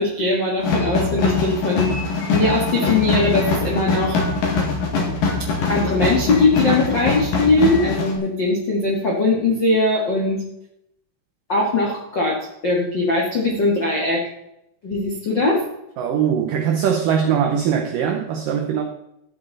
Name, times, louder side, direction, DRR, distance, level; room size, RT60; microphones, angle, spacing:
voice 1, 0.0-1.9 2.3-4.2 5.7-10.4 11.5-12.4 12.6-14.2 14.8-15.6, left 2 dB, 75° left, 1.0 m, -20 dB
sound 1, 0.6-8.2, left 4 dB, 55° left, 3.1 m, -22 dB
voice 2, 16.0-18.8, right 8 dB, 85° right, 1.9 m, -21 dB
13.0 x 8.9 x 4.0 m
omnidirectional pair, 5.2 m